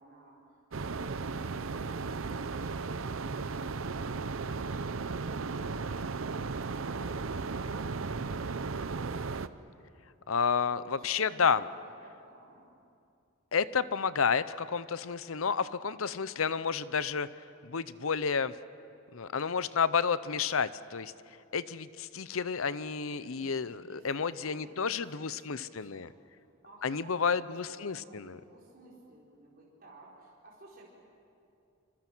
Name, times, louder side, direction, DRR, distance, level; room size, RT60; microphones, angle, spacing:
voice 1, 0.0-3.2 10.6-11.6 12.0-12.6 23.3-26.0 26.3-30.9, right 1 dB, 45° right, -6 dB, 4.6 m, -56 dB
sound 1, 0.7-9.5, right 4 dB, 70° right, 0.7 m, -35 dB
voice 2, 10.3-11.6 13.5-17.3 17.6-18.5 19.1-21.1 21.5-26.1 26.8-28.4, left 6 dB, 80° left, 15 dB, 0.7 m, -30 dB
27.0 x 25.5 x 6.2 m, 2.5 s
head